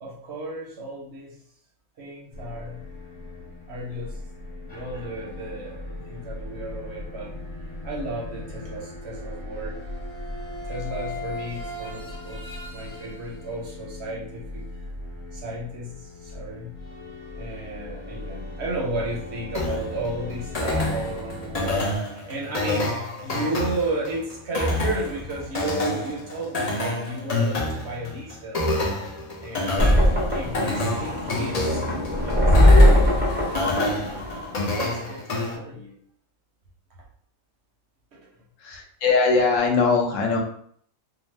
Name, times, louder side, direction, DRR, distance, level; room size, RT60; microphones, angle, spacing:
voice 1, 0.0-1.4 2.0-2.8 3.7-4.2 4.6-7.4 7.8-9.8 10.6-12.4 12.7-14.8 15.3-16.7 17.3-28.7 29.4-33.7 34.6-36.0 38.1-38.2, right 1 dB, 60° right, -3 dB, 0.8 m, -34 dB
sound 1, 2.3-22.0, left 1 dB, 35° left, 1.3 m, -38 dB
sound 2, 19.5-35.5, left 2 dB, 55° left, 0.4 m, -28 dB
sound 3, 29.8-34.8, left 1 dB, 15° right, 0.4 m, -19 dB
voice 2, 38.6-40.4, left 4 dB, 70° left, 1 dB, 0.9 m, -21 dB
2.7 x 2.1 x 3.1 m, 0.62 s
omnidirectional pair, 1.4 m